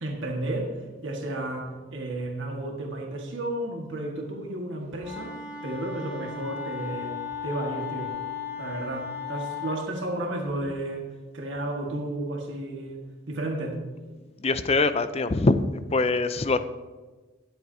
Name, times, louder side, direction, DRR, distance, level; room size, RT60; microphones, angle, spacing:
voice 1, 0.0-5.4 5.6-7.2 7.4-8.2 8.6-11.1 11.3-13.8, right 1 dB, 60° right, 0 dB, 1.7 m, -32 dB
Wind instrument woodwind instrument, 5.0-9.8, left 6 dB, 5° right, 3.0 m, -36 dB
voice 2, 14.4-15.6 15.9-16.6, left 3 dB, 30° left, 11 dB, 0.5 m, -23 dB
19.0 x 8.2 x 2.8 m, 1.3 s
head